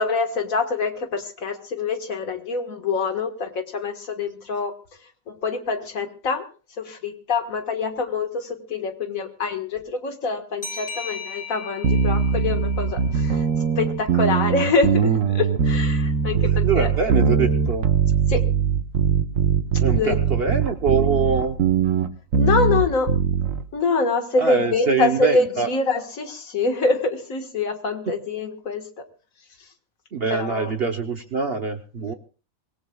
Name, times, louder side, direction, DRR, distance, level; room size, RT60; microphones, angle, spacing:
voice 1, 0.0-4.7 5.3-6.4 6.8-13.4 13.8-17.1 18.3-18.4 19.9-20.2 22.4-23.1 23.7-28.9 30.3-30.7, left 4 dB, 90° left, 6 dB, 2.0 m, -25 dB
sound 1, 10.6-13.9, left 4 dB, 45° left, 3.7 m, -38 dB
sound 2, 11.8-23.6, right 6 dB, 75° right, 1.3 m, -21 dB
voice 2, 16.5-17.9 19.8-21.6 24.4-25.7 30.1-32.1, right 5 dB, 50° right, 5 dB, 1.1 m, -24 dB
25.0 x 17.5 x 2.3 m, 0.37 s
omnidirectional pair, 1.4 m